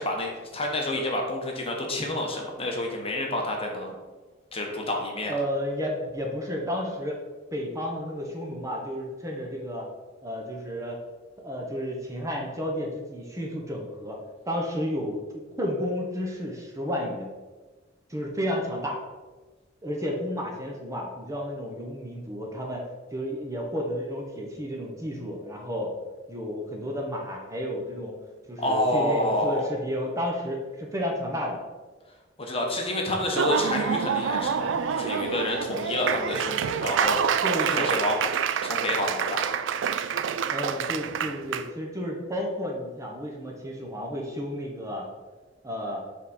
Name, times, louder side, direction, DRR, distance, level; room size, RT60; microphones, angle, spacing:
voice 1, 0.0-4.0 4.5-5.4 28.6-29.7 32.4-37.4 37.7-38.2 38.6-39.4, left 1 dB, 30° left, 1 dB, 1.0 m, -28 dB
voice 2, 5.1-7.2 7.5-9.9 10.2-11.0 11.4-14.2 14.5-15.2 15.6-17.3 18.1-19.0 19.8-25.9 26.3-28.2 28.5-31.6 37.4-38.1 40.5-45.1 45.6-46.0, equal, 15° right, -1 dB, 0.9 m, -32 dB
Laughter / Applause, 33.2-41.6, right 7 dB, 75° right, 0.3 m, -27 dB
7.1 x 3.6 x 4.2 m, 1.3 s
head